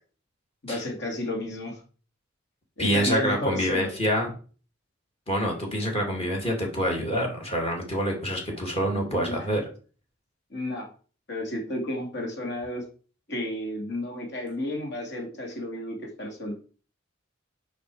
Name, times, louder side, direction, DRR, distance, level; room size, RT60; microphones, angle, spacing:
voice 1, 0.6-1.8 2.8-3.9 9.1-9.4 10.5-10.9 11.3-12.8 13.3-16.5, left 1 dB, 60° left, 1 dB, 2.5 m, -32 dB
voice 2, 2.8-4.3 5.3-9.6, equal, 30° left, 0 dB, 2.3 m, -26 dB
9.3 x 5.1 x 4.8 m, 0.39 s
head